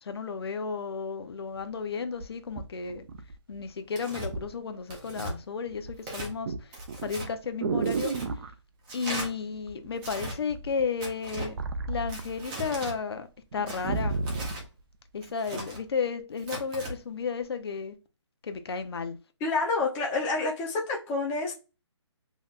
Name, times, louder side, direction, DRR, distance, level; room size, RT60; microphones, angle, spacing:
voice 1, 0.0-3.0 3.5-8.1 8.9-11.6 11.9-13.3 13.5-14.2 15.1-18.0 18.4-19.2, left 5 dB, 55° left, 0.7 m, -33 dB
sound 1, 1.6-1.7 2.2-3.7 4.3-4.5 4.9-5.4 5.7-8.5 9.7-10.2 10.5-12.8 13.1-13.2 13.5-14.6 15.3-15.4, right 4 dB, 45° right, 0.5 m, -33 dB
Tearing, 3.9-4.3 4.9-5.3 6.0-6.3 6.7-7.3 7.8-8.3 8.9-9.3 10.0-10.4 11.0-11.5 12.1-12.9 13.7-14.6 15.2-15.8 16.4-16.9, right 1 dB, 15° right, 0.8 m, -38 dB
voice 2, 19.4-21.5, left 3 dB, 10° left, 0.5 m, -28 dB
3.3 x 2.8 x 2.3 m
hypercardioid pair, 155°, 15 cm